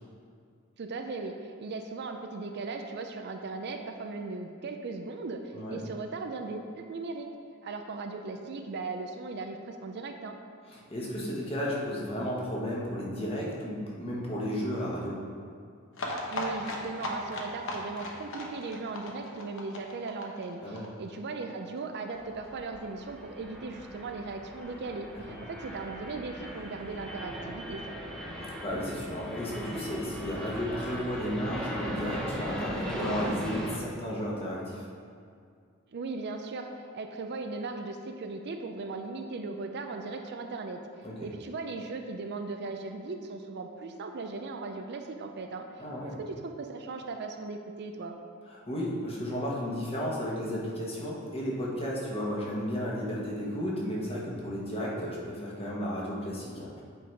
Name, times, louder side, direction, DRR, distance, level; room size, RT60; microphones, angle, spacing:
voice 1, 0.8-7.3 7.6-10.4 16.3-28.0 35.9-36.7 36.9-40.8 41.2-45.6 46.0-48.2, right 3 dB, 55° right, 5 dB, 0.5 m, -38 dB
voice 2, 10.7-15.2 20.6-20.8 25.3-25.4 28.4-34.8 41.0-41.3 45.8-46.2 48.5-56.8, equal, 30° left, -5 dB, 1.4 m, -33 dB
sound 1, 15.9-21.5 21.8-21.9 22.1-22.2 22.4-22.5, left 1 dB, 65° left, 1.0 m, -37 dB
sound 2, 22.1-33.8, equal, 5° left, 0.8 m, -38 dB
8.4 x 4.0 x 4.7 m, 2.2 s
head